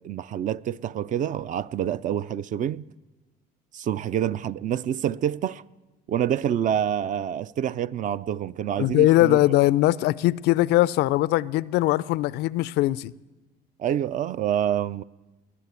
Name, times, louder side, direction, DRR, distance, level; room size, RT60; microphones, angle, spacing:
voice 1, 0.0-2.9 3.7-5.6 6.1-9.4 13.8-15.0, right 10 dB, 50° right, 0.4 m, -27 dB
voice 2, 8.8-13.1, left 16 dB, 85° left, 0.4 m, -21 dB
21.5 x 7.6 x 8.2 m
cardioid pair, 110°, 17 cm